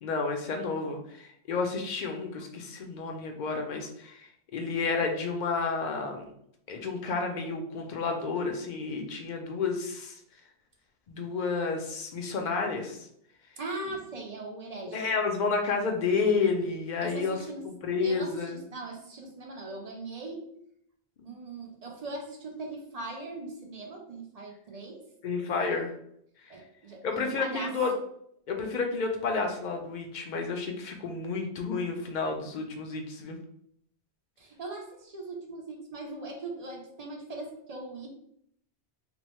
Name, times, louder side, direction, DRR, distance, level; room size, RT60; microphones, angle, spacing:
voice 1, 0.0-6.3 6.7-10.1 11.1-13.1 14.9-18.6 21.2-21.3 25.2-25.9 27.0-27.9 28.5-33.4, left 4 dB, 55° left, 3 dB, 0.5 m, -31 dB
voice 2, 13.6-15.0 17.0-17.6 18.0-20.5 21.2-25.0 26.5-27.7 34.4-38.1, right 2 dB, 55° right, 1 dB, 0.4 m, -40 dB
3.0 x 2.0 x 3.0 m, 0.70 s
omnidirectional pair, 1.1 m